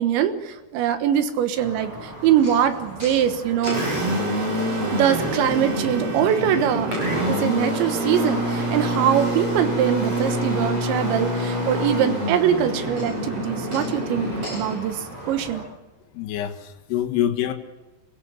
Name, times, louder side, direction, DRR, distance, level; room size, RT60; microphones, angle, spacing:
voice 1, 0.0-3.8 4.7-15.6, right 9 dB, 85° right, 8 dB, 3.7 m, -23 dB
Engine, 1.6-15.6, equal, 35° right, 9.2 m, -27 dB
Organ, 3.6-7.6, right 7 dB, 70° right, 2.8 m, -36 dB
voice 2, 16.1-17.5, left 11 dB, 70° left, 5 dB, 3.6 m, -25 dB
27.0 x 17.5 x 7.0 m, 1.1 s
omnidirectional pair, 5.1 m